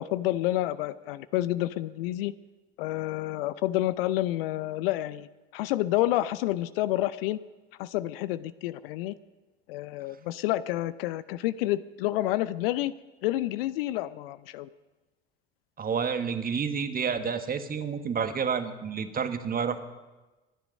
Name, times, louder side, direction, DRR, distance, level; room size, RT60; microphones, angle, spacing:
voice 1, 0.0-2.3 2.8-7.4 7.8-9.1 9.7-12.9 13.2-14.7, left 15 dB, 65° left, 16 dB, 0.6 m, -29 dB
voice 2, 15.8-19.8, right 6 dB, 30° right, 9 dB, 1.4 m, -29 dB
23.5 x 9.9 x 5.3 m, 1.2 s
figure-of-eight pair, 65°, 31 cm